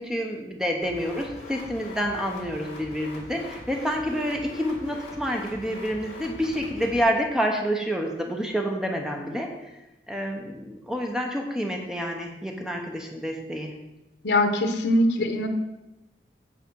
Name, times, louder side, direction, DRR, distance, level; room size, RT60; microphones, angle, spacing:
voice 1, 0.0-9.5 10.1-13.7, equal, 5° right, 2 dB, 0.8 m, -28 dB
sound 1, 0.8-7.0, left 2 dB, 40° left, 2.4 m, -42 dB
voice 2, 14.2-15.5, left 1 dB, 75° left, 7 dB, 0.9 m, -22 dB
8.3 x 4.1 x 6.2 m, 0.98 s
head